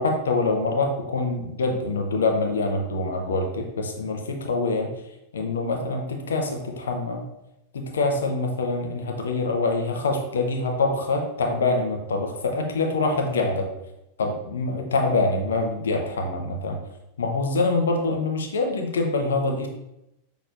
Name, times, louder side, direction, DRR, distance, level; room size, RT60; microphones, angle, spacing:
voice 1, 0.0-4.9 5.3-7.2 7.7-13.7 14.2-16.8 17.2-19.7, left 3 dB, 65° left, 3 dB, 0.6 m, -25 dB
5.9 x 3.0 x 2.5 m, 0.88 s
figure-of-eight pair, 90°, 0 cm